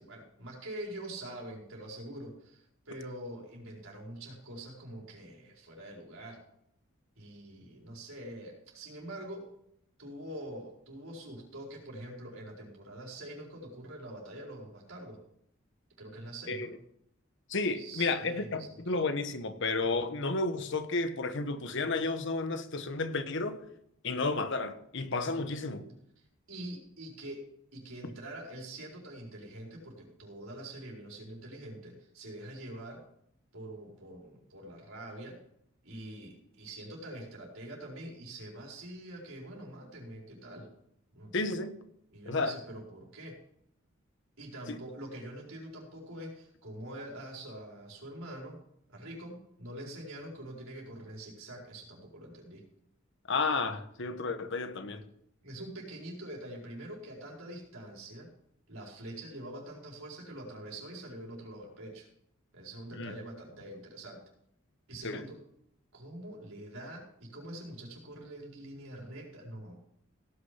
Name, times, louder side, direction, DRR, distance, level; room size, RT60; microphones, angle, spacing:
voice 1, 0.0-6.4 7.2-9.5 10.0-15.2 16.0-16.7 17.7-18.8 26.5-27.4 27.7-33.0 33.5-35.4 35.8-40.7 41.1-41.3 42.1-43.4 44.4-48.6 48.9-52.6 55.4-58.3 58.7-62.1 62.5-64.2 64.9-65.4 65.9-69.7, right 1 dB, 90° right, 4.8 m, -45 dB
voice 2, 17.5-23.6 24.0-25.9 41.3-41.8 42.3-42.5 44.7-44.8 53.3-55.0 62.9-63.2 65.0-65.2, left 3 dB, 65° left, 1.2 m, -32 dB
17.0 x 6.5 x 5.8 m
head